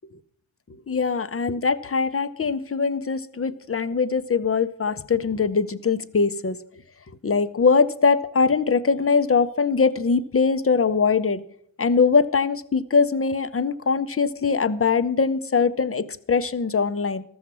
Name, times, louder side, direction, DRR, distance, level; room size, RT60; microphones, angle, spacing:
voice 1, 0.9-6.6 7.2-11.4 11.8-17.2, left 5 dB, 30° left, 13 dB, 0.5 m, -22 dB
13.0 x 7.1 x 6.0 m, 0.68 s
wide cardioid pair, 105°, 45 cm